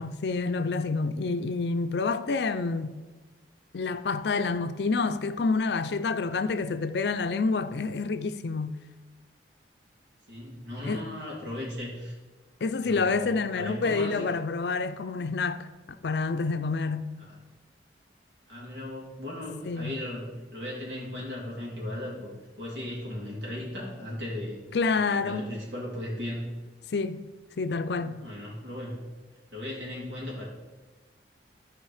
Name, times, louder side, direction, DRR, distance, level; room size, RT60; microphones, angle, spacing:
voice 1, 0.0-3.0 3.7-8.7 10.8-11.0 12.6-17.1 19.6-19.9 24.7-25.4 26.9-27.2 27.6-28.2, left 4 dB, 65° left, 0.5 m, -28 dB
voice 2, 10.3-12.1 12.8-14.2 17.2-17.4 18.5-24.6 24.9-26.5 28.0-29.0 29.5-30.4, left 1 dB, 80° right, 3.4 m, -37 dB
14.0 x 5.0 x 4.9 m
head